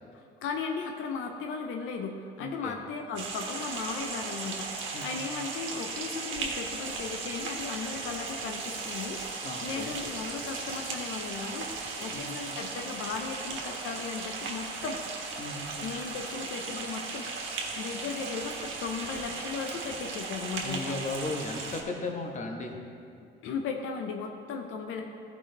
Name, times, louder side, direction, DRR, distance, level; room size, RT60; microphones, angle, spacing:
voice 1, 0.1-15.0 15.8-20.9 23.4-25.0, left 5 dB, 90° left, 3 dB, 0.7 m, -36 dB
voice 2, 2.4-2.8 4.9-5.0 5.3-5.4 9.4-10.0 12.1-12.6 15.4-15.9 20.6-22.8, left 2 dB, 35° left, 2 dB, 1.2 m, -36 dB
sound 1, 3.1-21.8, right 4 dB, 75° right, 1.3 m, -37 dB
13.5 x 4.9 x 3.9 m, 2.5 s
cardioid pair, 90°, 20 cm